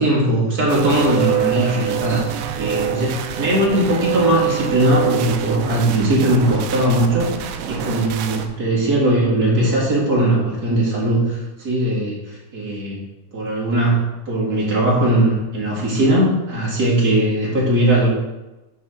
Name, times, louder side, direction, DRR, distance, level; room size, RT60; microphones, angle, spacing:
voice 1, 0.0-13.0 13.3-18.1, right 1 dB, 35° right, -5 dB, 2.3 m, -19 dB
sound 1, 0.7-8.5, right 10 dB, 80° right, 1.5 m, -25 dB
11.5 x 4.2 x 3.8 m, 1.0 s
omnidirectional pair, 3.5 m